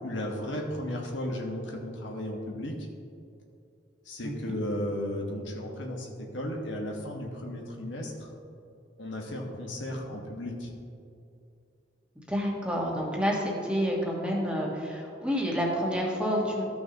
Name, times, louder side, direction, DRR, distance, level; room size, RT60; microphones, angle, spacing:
voice 1, 0.0-2.8 4.0-8.3 9.0-10.7, left 1 dB, 80° left, 0 dB, 1.4 m, -35 dB
voice 2, 4.2-4.6 12.3-16.6, equal, 5° right, -3 dB, 1.4 m, -29 dB
14.0 x 6.1 x 2.9 m, 2.5 s
head